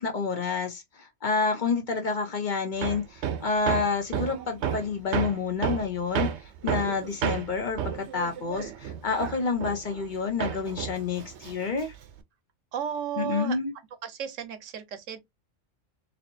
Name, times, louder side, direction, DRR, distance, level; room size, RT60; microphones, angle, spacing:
voice 1, 0.0-6.3 6.6-11.9 13.2-13.7, left 4 dB, 50° left, 0.7 m, -29 dB
Hammer, 2.8-10.1 10.4-12.2, right 8 dB, 70° right, 0.9 m, -32 dB
voice 2, 12.7-13.6 14.0-15.2, right 9 dB, 90° right, 1.2 m, -33 dB
4.3 x 2.8 x 2.6 m
omnidirectional pair, 1.3 m